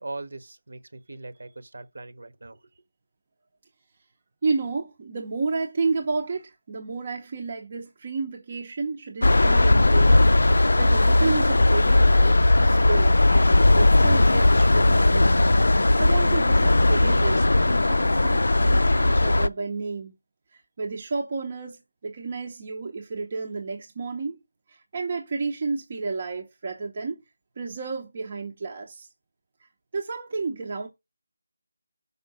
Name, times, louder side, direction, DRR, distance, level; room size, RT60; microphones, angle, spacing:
voice 1, 0.0-2.6, right 2 dB, 50° right, 1.1 m, -40 dB
voice 2, 4.4-13.2 13.8-15.4 16.0-20.1 20.5-21.8 22.0-24.4 24.7-27.2 27.6-29.1 29.9-30.9, right 4 dB, 20° right, 0.7 m, -31 dB
sound 1, 9.2-19.5, left 2 dB, 70° left, 0.4 m, -18 dB
5.5 x 5.0 x 6.2 m
figure-of-eight pair, 180°, 0 cm